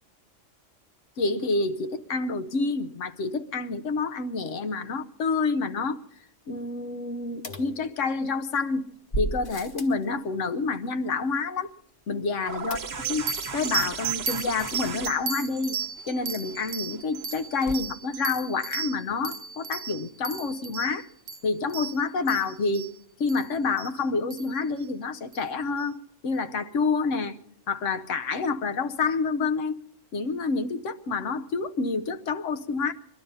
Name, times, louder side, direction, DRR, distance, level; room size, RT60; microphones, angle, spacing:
voice 1, 1.2-6.0 6.5-8.9 9.2-11.7 12.1-12.8 13.1-13.3 13.5-15.8 16.1-21.1 21.4-22.9 23.2-26.0 26.2-27.4 27.7-29.8 30.1-32.9, left 4 dB, 75° left, 9 dB, 1.2 m, -28 dB
sound 1, 7.4-8.4 9.1-10.0 12.7-13.3 13.6-13.7 13.9-14.0, right 2 dB, 45° left, 1.3 m, -34 dB
sound 2, 12.5-17.8 19.1-19.2, right 5 dB, 40° right, 1.0 m, -37 dB
sound 3, 13.0-22.9 23.3-23.5 23.8-23.9 24.3-24.6 25.3-25.4, right 7 dB, 80° right, 1.1 m, -35 dB
21.5 x 12.0 x 5.5 m, 0.76 s
omnidirectional pair, 1.3 m